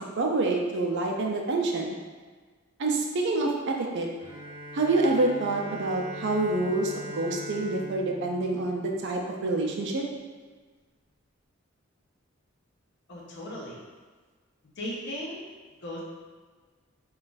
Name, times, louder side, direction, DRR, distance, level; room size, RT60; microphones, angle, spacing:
voice 1, 0.2-2.0 2.8-4.1 4.7-10.0, right 2 dB, 60° right, 1 dB, 0.4 m, -27 dB
Bowed string instrument, 4.2-9.7, equal, 25° left, 0.8 m, -41 dB
voice 2, 13.1-13.8 14.8-15.4 15.8-16.0, equal, 60° left, -3 dB, 0.7 m, -36 dB
2.5 x 2.3 x 3.9 m, 1.4 s
head